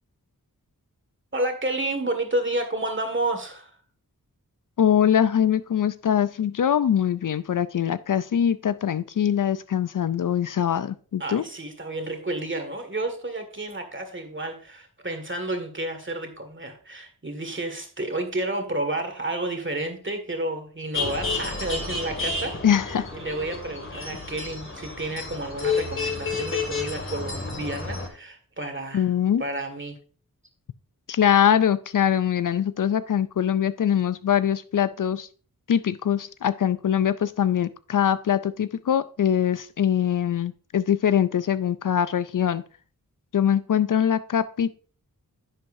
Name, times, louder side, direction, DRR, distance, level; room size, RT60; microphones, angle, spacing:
voice 1, 1.3-3.7 11.2-22.6 23.1-29.1 29.4-30.0, right 1 dB, 35° right, 6 dB, 1.9 m, -30 dB
voice 2, 4.8-11.4 22.6-23.1 28.9-29.4 31.1-35.3 35.7-42.6 43.3-44.8, left 9 dB, 65° left, 15 dB, 0.5 m, -23 dB
sound 1, 20.9-28.1, left 4 dB, 35° left, 1.9 m, -30 dB
10.5 x 7.8 x 2.6 m, 0.41 s
wide cardioid pair, 65°, 35 cm